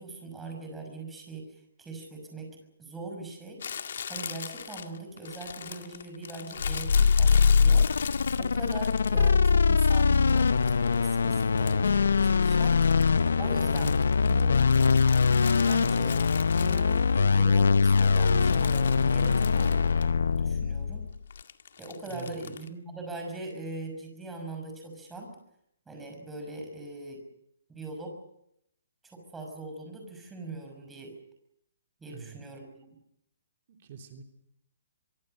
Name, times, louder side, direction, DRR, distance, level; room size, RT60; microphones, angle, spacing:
voice 1, 0.0-1.5 1.8-2.5 2.8-3.6 4.1-7.9 8.4-12.8 13.4-14.9 15.6-16.2 16.5-21.0 21.8-25.3 25.9-27.2 27.7-28.2 29.1-31.1 32.0-32.9, right 2 dB, 5° right, 3 dB, 5.9 m, -41 dB
Crumpling crinkling, 3.6-9.3 9.8-12.0 12.2-17.3 17.7-20.1 20.4-20.5 21.3-22.7, left 7 dB, 60° left, 2.1 m, -40 dB
sound 1, 6.6-21.2, left 5 dB, 85° left, 0.8 m, -23 dB
voice 2, 22.0-22.5 32.1-32.4 33.7-34.2, right 5 dB, 40° right, 4 dB, 3.3 m, -45 dB
24.5 x 23.5 x 6.6 m, 0.76 s
hypercardioid pair, 165°, 0 cm